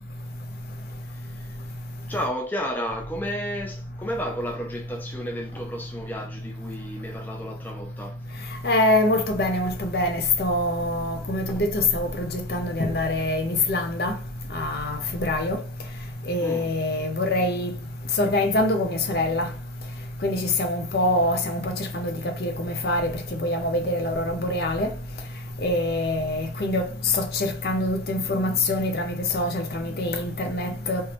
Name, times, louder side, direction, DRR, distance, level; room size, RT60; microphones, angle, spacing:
voice 1, 1.1-1.6 2.1-8.5 11.5-11.6 16.4-16.7, equal, 10° left, 0.5 m, -32 dB
voice 2, 8.6-14.1 14.5-15.6 16.3-17.7 18.2-19.5 20.2-23.1 23.4-24.9 25.6-31.0, left 1 dB, 55° left, 0.7 m, -24 dB
3.3 x 3.0 x 3.0 m
head